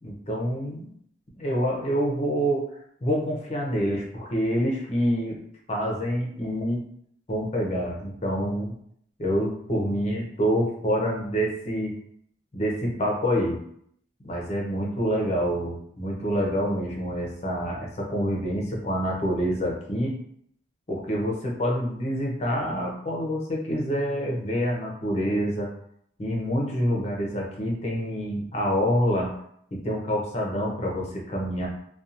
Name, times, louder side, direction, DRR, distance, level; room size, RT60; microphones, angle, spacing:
voice 1, 0.0-0.9 1.4-2.6 3.0-5.4 5.7-6.8 7.3-8.7 9.2-11.9 12.5-13.6 14.2-20.2 20.9-25.7 26.2-29.3 29.7-31.7, equal, 35° left, -2 dB, 0.6 m, -27 dB
2.8 x 2.3 x 2.5 m, 0.68 s
head